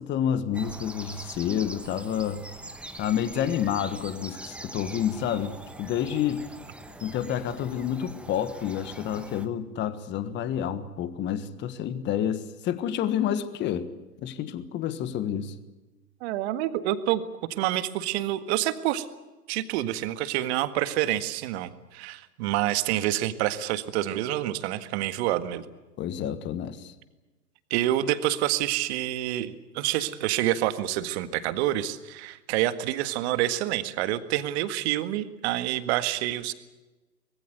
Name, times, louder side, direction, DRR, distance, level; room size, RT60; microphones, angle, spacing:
voice 1, 0.0-2.4 3.0-6.5 7.0-13.9 14.2-15.5 26.0-26.9, left 9 dB, 20° left, 1.4 m, -29 dB
sound 1, 0.5-9.5, right 2 dB, ahead, 1.0 m, -43 dB
voice 2, 16.2-17.2 17.6-19.1 19.5-25.7 27.7-36.5, right 14 dB, 40° right, 1.8 m, -27 dB
24.5 x 21.0 x 8.1 m
hypercardioid pair, 120°, 50 cm